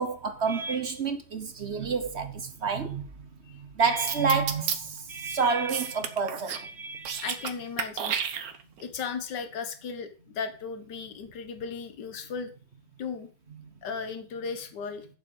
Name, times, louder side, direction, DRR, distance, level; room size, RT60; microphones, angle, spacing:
voice 1, 0.0-3.1 3.5-7.3, right 5 dB, 45° right, 1.0 m, -29 dB
sound 1, 4.1-4.8 5.7-6.7 6.9-7.5 7.8-8.8, right 8 dB, 60° right, 1.4 m, -31 dB
voice 2, 7.2-8.2 8.8-12.5 13.0-13.3 13.8-15.1, left 5 dB, 80° left, 1.8 m, -36 dB
8.6 x 7.5 x 5.3 m
omnidirectional pair, 1.8 m